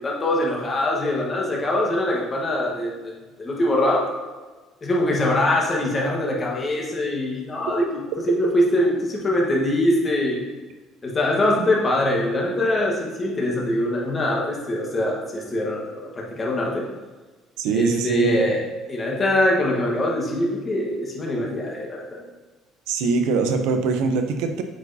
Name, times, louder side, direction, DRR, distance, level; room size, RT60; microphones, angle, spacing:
voice 1, 0.0-4.0 4.8-7.9 8.3-10.4 11.0-16.8 17.7-22.2, left 1 dB, 20° left, -2 dB, 1.4 m, -23 dB
voice 2, 17.6-18.4 22.9-24.6, right 4 dB, 85° right, 6 dB, 0.7 m, -23 dB
8.1 x 4.8 x 2.8 m, 1.3 s
cardioid pair, 150°, 0 cm